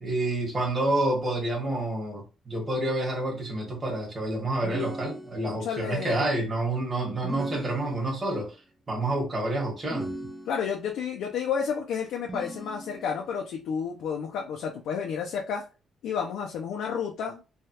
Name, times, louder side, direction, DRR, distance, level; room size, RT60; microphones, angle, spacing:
voice 1, 0.0-8.5 8.9-10.1, right 1 dB, 25° right, 1.3 m, -28 dB
sound 1, 4.6-5.8 7.2-8.4 9.8-10.9 12.3-13.3, right 2 dB, 10° right, 0.4 m, -38 dB
voice 2, 5.4-6.3 10.5-15.6 16.0-17.4, left 7 dB, 80° left, 0.5 m, -31 dB
3.2 x 2.3 x 2.9 m
cardioid pair, 120°, 0 cm